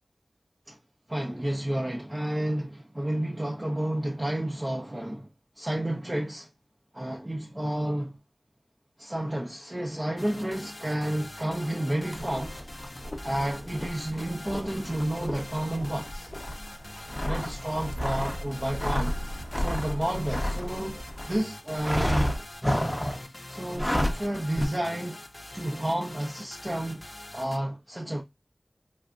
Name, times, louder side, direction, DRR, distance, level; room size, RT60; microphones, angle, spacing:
voice 1, 1.1-5.3 5.6-6.5 6.9-8.2 9.0-12.6 13.2-16.3 17.2-19.2 19.5-21.0 21.3-22.3 23.5-25.2 25.5-27.0 27.3-28.2, right 1 dB, 25° right, 0.6 m, -31 dB
sound 1, 10.2-27.6, left 1 dB, 40° left, 0.4 m, -44 dB
sound 2, 12.1-21.3 21.8-23.3 23.7-24.3 24.6-24.7, equal, 15° left, 0.7 m, -31 dB
3.3 x 2.6 x 2.4 m
wide cardioid pair, 55°, 0 cm